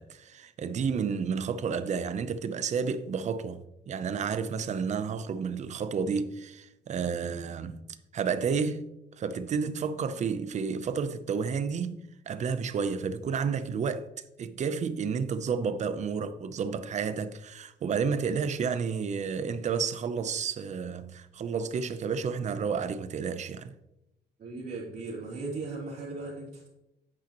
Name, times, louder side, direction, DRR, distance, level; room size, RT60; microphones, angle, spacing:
voice 1, 0.0-7.8 8.1-8.9 9.2-14.1 14.4-23.8, right 6 dB, 40° right, 0.6 m, -31 dB
voice 2, 24.4-26.7, right 3 dB, 60° right, 3.2 m, -37 dB
10.5 x 8.6 x 3.0 m
cardioid pair, 145°, 18 cm